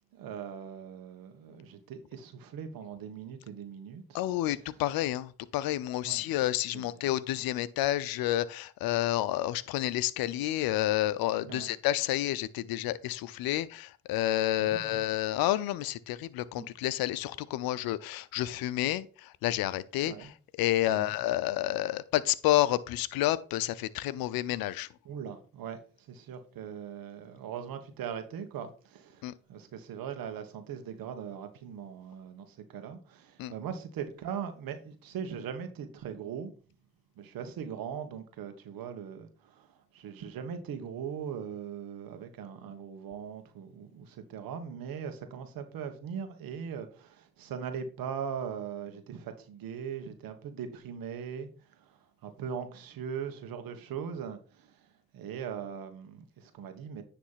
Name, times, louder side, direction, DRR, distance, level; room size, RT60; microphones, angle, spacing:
voice 1, 0.1-4.2 6.0-6.2 6.7-7.1 11.4-11.7 14.6-15.0 16.6-16.7 20.0-20.3 20.9-21.1 25.0-36.5 37.2-54.9 55.1-57.0, right 7 dB, 70° right, 1.4 m, -40 dB
voice 2, 4.1-20.3 20.6-24.9 29.2-29.3 33.4-33.5, left 14 dB, 75° left, 0.6 m, -30 dB
9.8 x 3.4 x 5.6 m
hypercardioid pair, 55°, 36 cm